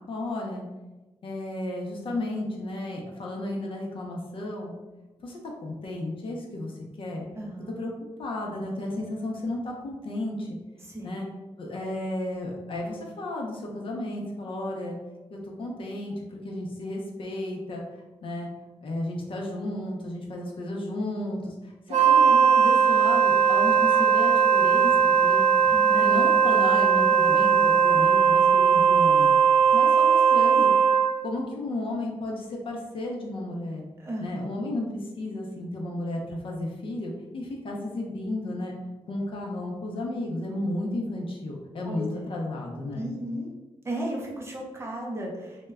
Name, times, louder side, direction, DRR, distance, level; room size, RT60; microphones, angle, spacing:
voice 1, 0.1-0.6 1.2-4.7 5.2-7.3 7.8-7.9 8.2-10.6 11.0-11.3 11.6-15.0 15.3-17.8 18.2-18.5 18.8-29.3 29.7-30.7 31.2-33.8 34.2-38.7 39.1-43.1, left 1 dB, 55° left, -1 dB, 0.5 m, -33 dB
voice 2, 7.3-7.7 10.8-11.2 25.7-26.1 34.0-34.5 41.8-42.3 42.9-43.5 43.8-45.7, right 1 dB, 25° right, -2 dB, 0.5 m, -35 dB
Wind instrument woodwind instrument, 21.9-31.2, right 6 dB, 90° right, 0.4 m, -19 dB
2.1 x 2.1 x 3.4 m, 1.1 s
wide cardioid pair, 135°, 11 cm